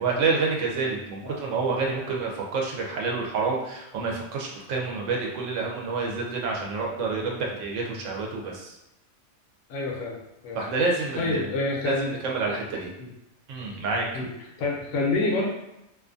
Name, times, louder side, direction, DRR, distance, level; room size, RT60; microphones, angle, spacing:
voice 1, 0.0-8.7 10.5-11.5 11.8-11.9 12.2-12.9 13.5-14.1, right 4 dB, 80° right, -1 dB, 1.0 m, -28 dB
voice 2, 9.7-10.2 10.4-10.6 11.2-12.2 13.0-13.1 14.1-14.3 14.6-15.5, left 2 dB, 75° left, -1 dB, 0.9 m, -27 dB
2.5 x 2.3 x 2.5 m, 0.89 s
omnidirectional pair, 1.3 m